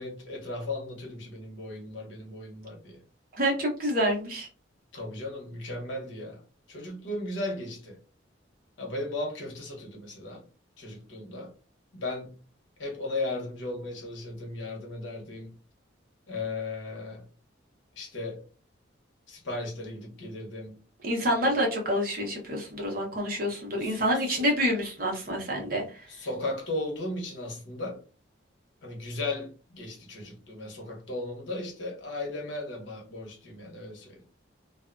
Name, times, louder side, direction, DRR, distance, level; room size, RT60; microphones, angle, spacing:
voice 1, 0.0-3.0 4.9-6.4 6.7-8.0 8.8-10.4 10.8-11.5 11.9-12.4 12.8-15.5 16.3-17.2 18.0-18.4 19.3-20.8 21.4-21.5 23.8-24.5 26.1-28.0 28.8-34.2, left 2 dB, 75° left, 1.0 m, -36 dB
voice 2, 3.4-4.5 21.0-25.8, equal, 50° right, 0.9 m, -27 dB
2.5 x 2.3 x 2.5 m
head